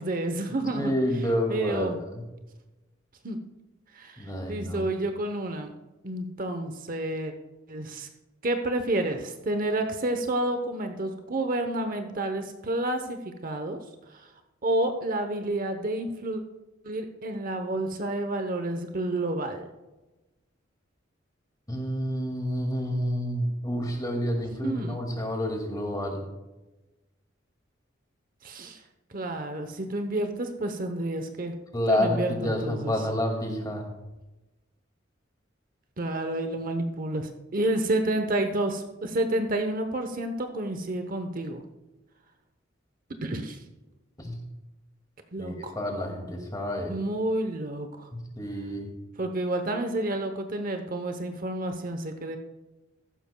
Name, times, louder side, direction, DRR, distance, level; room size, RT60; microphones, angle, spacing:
voice 1, 0.0-0.9 1.5-2.0 3.2-3.4 3.9-5.7 6.0-7.3 7.7-8.1 8.4-13.8 14.1-14.3 14.6-16.4 16.8-19.6 24.6-25.0 28.4-28.8 29.1-31.6 31.9-33.0 36.0-41.6 43.2-43.6 45.3-45.7 46.9-48.1 49.2-52.4, right 1 dB, 45° right, 6 dB, 0.9 m, -30 dB
voice 2, 0.7-2.2 4.2-4.9 21.7-26.2 31.7-33.9 44.2-44.4 45.4-46.9 48.1-48.9, equal, 20° left, 2 dB, 2.2 m, -29 dB
15.0 x 12.0 x 2.3 m, 1.1 s
head